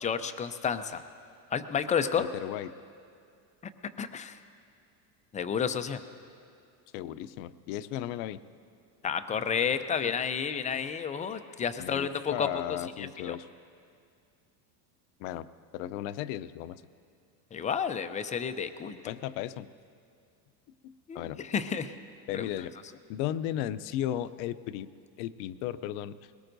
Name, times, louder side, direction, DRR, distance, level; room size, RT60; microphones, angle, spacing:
voice 1, 0.0-1.0 1.5-2.3 4.0-4.4 5.3-6.0 9.0-12.5 13.0-13.4 17.5-19.1 21.1-21.9 22.3-22.4, left 7 dB, 15° left, 10 dB, 0.4 m, -31 dB
voice 2, 2.2-2.7 6.9-8.4 11.8-13.5 15.2-15.5 15.7-16.8 19.1-19.7 20.8-21.4 22.3-22.7 23.1-24.9 25.2-26.1, left 12 dB, 60° left, 14 dB, 0.6 m, -35 dB
21.5 x 18.5 x 2.6 m, 2.3 s
supercardioid pair, 110°, 49 cm